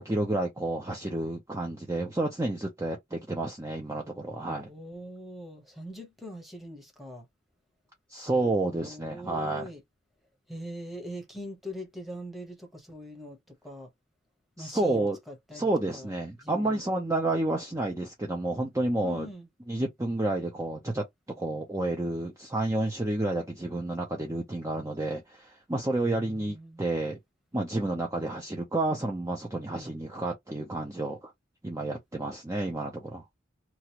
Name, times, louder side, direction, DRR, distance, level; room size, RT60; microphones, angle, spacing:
voice 1, 0.0-4.7 8.1-9.7 14.6-15.2 15.5-19.3 19.7-21.0 21.4-27.2 27.5-31.3 31.6-33.2, right 2 dB, 15° right, 0.6 m, -30 dB
voice 2, 4.5-7.3 8.1-9.8 10.5-13.9 14.6-16.1 16.4-16.8 19.0-19.5 25.9-26.8 29.7-29.9, equal, ahead, 1.0 m, -42 dB
3.1 x 2.4 x 2.9 m
head